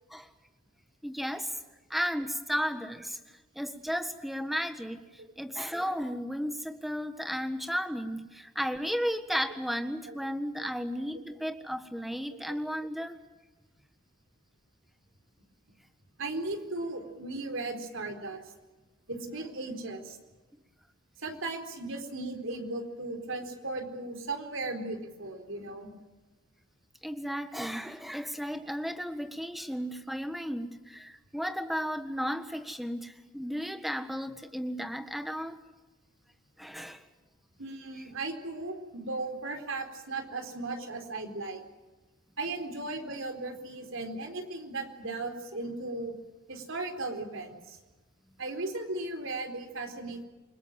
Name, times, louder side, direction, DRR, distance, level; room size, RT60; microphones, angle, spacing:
voice 1, 1.0-1.6 1.9-3.2 3.5-13.2 27.0-35.6 36.6-37.0, equal, ahead, 8 dB, 1.5 m, -34 dB
voice 2, 16.2-18.5 19.1-20.2 21.2-25.9 37.6-41.6 42.4-46.1 46.5-47.8 48.4-50.3, right 2 dB, 65° right, 5 dB, 4.2 m, -36 dB
29.0 x 21.0 x 7.6 m, 1.1 s
head